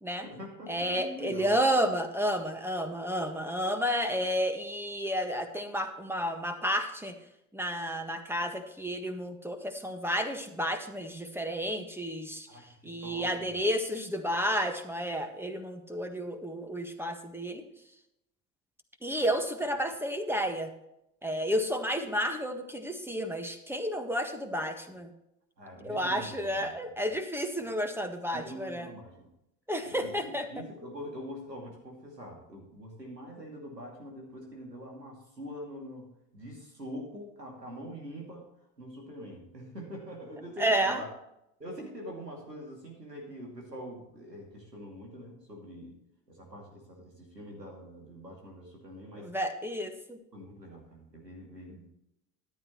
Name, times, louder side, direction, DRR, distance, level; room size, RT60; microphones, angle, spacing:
voice 1, 0.0-1.5 12.5-13.6 25.6-26.8 28.3-29.3 29.8-38.5 38.8-41.1 41.6-46.0 46.3-49.3 50.3-51.9, equal, 90° right, 0 dB, 2.6 m, -44 dB
voice 2, 0.7-7.2 7.5-12.5 12.8-17.6 19.0-20.7 21.2-25.1 25.8-28.9 29.7-30.5 40.6-41.0 49.2-50.2, equal, 5° right, 6 dB, 1.6 m, -31 dB
14.0 x 10.5 x 3.1 m, 0.81 s
figure-of-eight pair, 60°, 48 cm